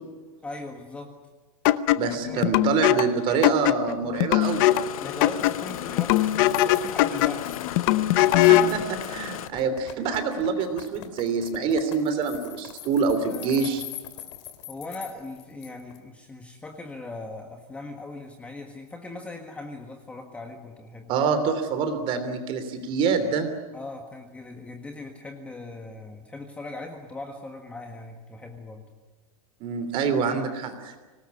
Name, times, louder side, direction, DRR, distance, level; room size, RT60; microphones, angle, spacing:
voice 1, 0.4-1.1 2.0-3.4 5.0-7.6 13.3-13.8 14.7-21.1 23.7-28.9 30.1-30.4, left 2 dB, 5° left, 3 dB, 1.6 m, -40 dB
sound 1, 1.6-8.8, left 14 dB, 35° left, 0.8 m, -22 dB
voice 2, 1.9-4.7 8.1-13.8 21.1-23.5 29.6-30.9, right 5 dB, 30° right, 9 dB, 3.1 m, -26 dB
Engine starting, 4.4-9.5, left 12 dB, 70° left, 1.2 m, -36 dB
sound 2, 5.4-16.0, left 11 dB, 50° left, 2.8 m, -43 dB
25.5 x 19.0 x 9.6 m, 1.3 s
supercardioid pair, 165°, 19 cm